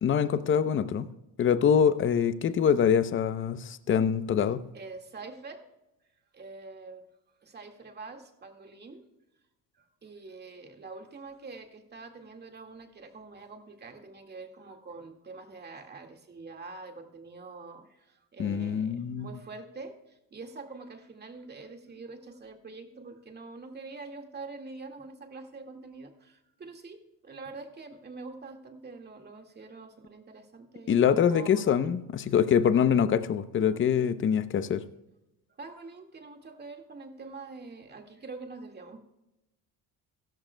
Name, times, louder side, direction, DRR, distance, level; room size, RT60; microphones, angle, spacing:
voice 1, 0.0-1.1 1.4-4.6 18.4-19.3 30.9-34.8, left 8 dB, 35° left, 13 dB, 0.7 m, -24 dB
voice 2, 4.7-5.7 6.3-7.0 7.4-9.0 9.8-32.0 35.6-39.0, right 3 dB, 30° right, 4 dB, 1.9 m, -45 dB
15.5 x 13.5 x 2.2 m, 0.93 s
cardioid pair, 115°, 34 cm